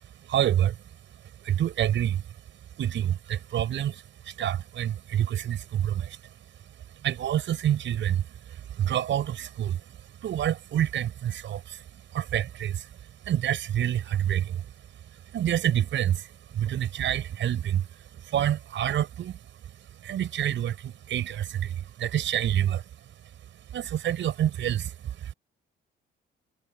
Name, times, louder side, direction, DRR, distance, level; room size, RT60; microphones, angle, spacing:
voice 1, 0.2-0.8 1.4-2.3 2.8-6.3 6.9-14.7 15.1-19.4 20.0-22.8 23.7-25.3, right 11 dB, 70° right, 6.8 m, -28 dB
cardioid pair, 90°, 20 cm